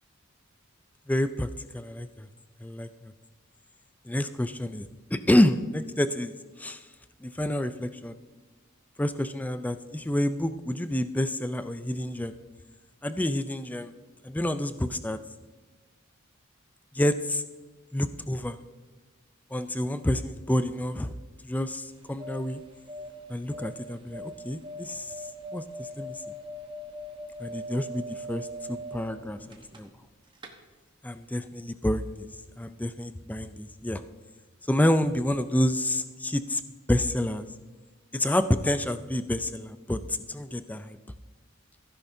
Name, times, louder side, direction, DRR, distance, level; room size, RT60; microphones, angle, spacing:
voice 1, 1.1-1.5 1.7-2.3 2.6-3.1 4.1-6.8 7.2-8.2 9.0-12.3 13.0-13.9 14.2-15.2 16.9-17.4 17.9-18.6 19.5-21.1 21.4-22.6 23.3-25.1 25.5-26.2 27.4-29.9 31.0-32.3 32.6-34.0 34.7-36.6 36.9-37.5 38.1-40.0 40.3-41.0, left 1 dB, 10° left, 11 dB, 0.4 m, -28 dB
sound 1, 21.9-30.1 30.4-30.5, equal, 20° right, 1.0 m, -41 dB
15.5 x 10.0 x 2.7 m, 1.4 s
head